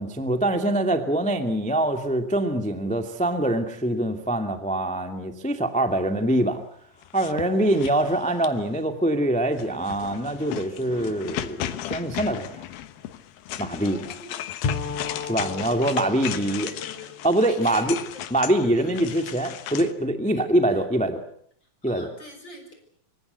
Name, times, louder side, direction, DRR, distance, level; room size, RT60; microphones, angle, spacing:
voice 1, 0.0-6.6 7.1-12.6 13.6-14.0 15.3-16.7 17.2-18.0 18.3-21.2 21.8-22.1, right 1 dB, 5° left, 7 dB, 1.2 m, -24 dB
sound 1, 7.0-8.8 9.5-19.9, left 12 dB, 90° left, 3.1 m, -36 dB
voice 2, 7.4-7.8 13.8-14.4 16.3-17.2 17.4-18.2 18.8-19.0 20.3-20.8 21.6-22.7, left 2 dB, 30° left, 5 dB, 6.4 m, -44 dB
Bowed string instrument, 14.6-18.4, left 5 dB, 60° left, 3.0 m, -34 dB
25.0 x 24.5 x 8.1 m, 0.64 s
omnidirectional pair, 4.1 m